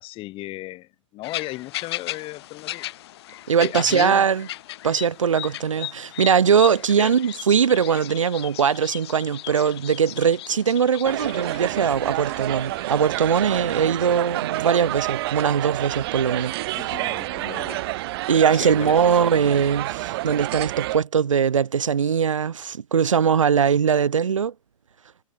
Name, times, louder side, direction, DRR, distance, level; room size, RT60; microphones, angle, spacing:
voice 1, 0.0-2.9 3.6-4.3 7.0-7.1 16.7-17.8 18.6-18.9, left 18 dB, 35° left, 7.0 m, -35 dB
sound 1, 1.2-12.8, left 15 dB, 50° left, 6.3 m, -37 dB
voice 2, 3.5-4.5 4.8-16.5 18.3-24.5, right 7 dB, 70° right, 5.8 m, -21 dB
sound 2, 11.0-21.0, right 18 dB, 45° right, 6.2 m, -29 dB
figure-of-eight pair, 105°, 17 cm